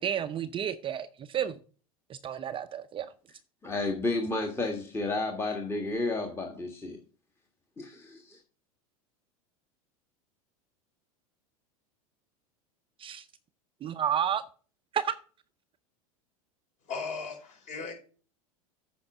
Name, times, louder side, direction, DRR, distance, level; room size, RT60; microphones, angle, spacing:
voice 1, 0.0-1.6 2.1-3.1 13.0-13.3 13.8-14.4 14.9-15.1, right 9 dB, 30° right, 0.6 m, -31 dB
voice 2, 3.6-7.0 7.8-8.4, left 2 dB, 15° left, 1.5 m, -31 dB
voice 3, 16.9-17.9, left 4 dB, 40° left, 4.7 m, -37 dB
8.6 x 5.2 x 6.0 m
hypercardioid pair, 90°, 19 cm